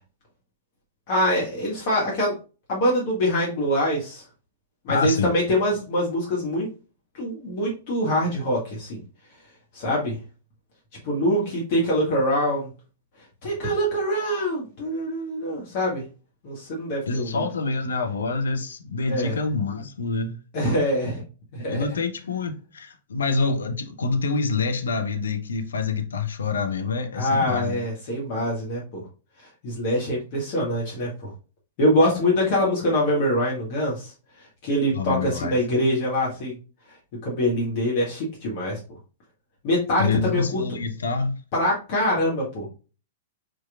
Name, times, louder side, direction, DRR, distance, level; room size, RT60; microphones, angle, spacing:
voice 1, 1.1-2.3 2.7-4.2 4.8-6.7 7.1-9.0 9.7-10.2 11.0-12.7 13.4-16.0 16.4-17.4 19.1-19.4 20.5-21.2 21.5-21.8 27.1-29.0 29.4-31.3 31.8-36.6 37.2-38.8 39.6-40.6 41.5-42.7, equal, 45° left, 1.6 m, -24 dB
voice 2, 4.9-5.3 17.1-20.4 21.7-27.8 34.9-35.6 40.0-41.4, left 4 dB, 65° left, 0.8 m, -26 dB
4.6 x 4.5 x 2.4 m
figure-of-eight pair, 105°, 0 cm